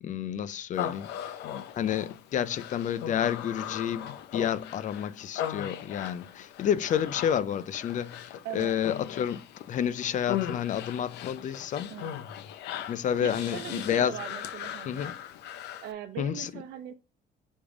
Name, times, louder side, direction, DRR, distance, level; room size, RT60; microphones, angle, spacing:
voice 1, 0.0-1.4 1.7-9.4 9.7-12.0 12.9-14.2 14.9-15.1 16.2-16.5, left 9 dB, 50° left, 0.5 m, -30 dB
Human voice, 0.7-15.9, left 10 dB, 85° left, 0.7 m, -38 dB
voice 2, 8.4-8.8 11.9-12.2 13.2-15.1 15.8-16.9, right 11 dB, 85° right, 0.8 m, -40 dB
6.6 x 3.6 x 5.0 m
cardioid pair, 110°, 17 cm